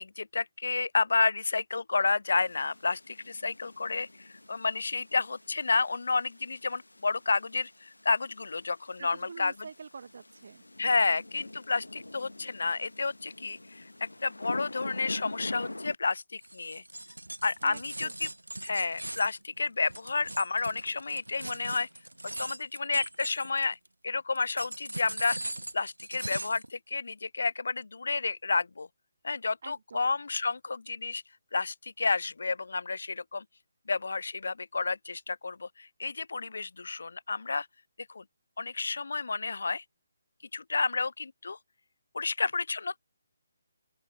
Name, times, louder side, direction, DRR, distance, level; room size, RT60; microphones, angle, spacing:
voice 1, 0.0-9.5 10.8-13.9 14.2-16.8 17.4-18.3 18.6-21.9 22.4-23.8 24.0-25.4 25.7-28.9 29.2-31.2 31.5-33.4 33.9-37.7 38.1-38.2 38.6-39.8 40.5-41.6 42.1-43.0, left 4 dB, 60° left, 0.5 m, -30 dB
sound 1, 2.3-16.0, left 1 dB, 80° left, 1.1 m, -45 dB
voice 2, 9.0-10.6 17.6-18.2 29.6-30.1, right 5 dB, 50° right, 1.2 m, -46 dB
sound 2, 16.4-23.9 24.4-26.7, right 1 dB, 80° right, 1.0 m, -40 dB
open air
figure-of-eight pair, 145°, 0 cm